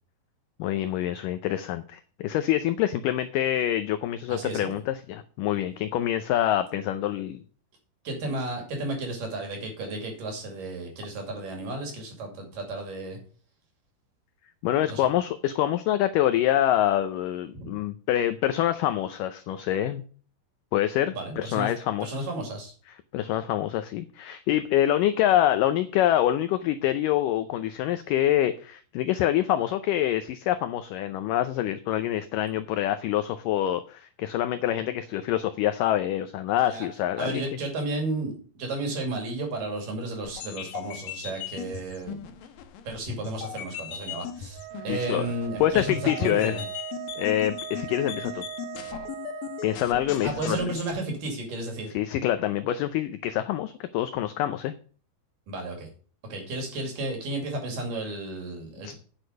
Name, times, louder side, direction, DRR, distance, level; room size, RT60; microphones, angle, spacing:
voice 1, 0.6-7.4 14.6-20.0 20.7-22.3 23.1-37.4 44.9-45.3 45.6-46.6 47.2-48.4 49.6-50.6 51.9-54.7 58.8-58.9, left 12 dB, 85° left, 10 dB, 1.9 m, -26 dB
voice 2, 4.3-4.7 8.0-13.2 14.9-15.1 17.5-17.8 21.1-21.7 22.0-22.7 36.7-36.9 37.2-42.3 42.9-46.6 50.2-51.9 55.5-55.9 56.3-58.9, right 2 dB, 60° right, 3 dB, 4.0 m, -33 dB
sound 1, 40.2-50.9, left 9 dB, 70° left, 2.4 m, -38 dB
Wind instrument woodwind instrument, 44.5-49.8, right 17 dB, 85° right, 2.0 m, -39 dB
9.8 x 6.6 x 5.1 m, 0.41 s
omnidirectional pair, 4.6 m